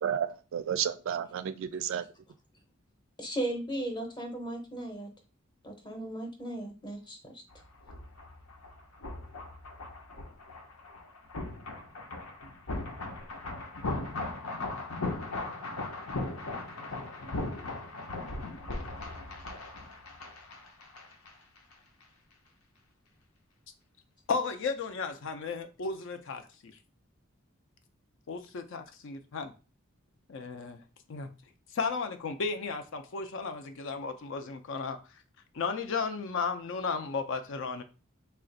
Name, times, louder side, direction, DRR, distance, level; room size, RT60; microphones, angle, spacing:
voice 1, 0.0-2.0, right 8 dB, 65° right, 0.3 m, -32 dB
voice 2, 3.2-5.1 5.6-7.4, right 1 dB, 20° left, 0.7 m, -36 dB
sound 1, 7.5-21.3 21.6-21.7, left 2 dB, 90° left, 0.8 m, -38 dB
voice 3, 24.3-26.7 28.3-29.5 30.3-30.8 31.1-31.3 31.7-35.0 35.5-37.8, left 4 dB, 65° left, 0.5 m, -34 dB
3.2 x 2.4 x 3.8 m
head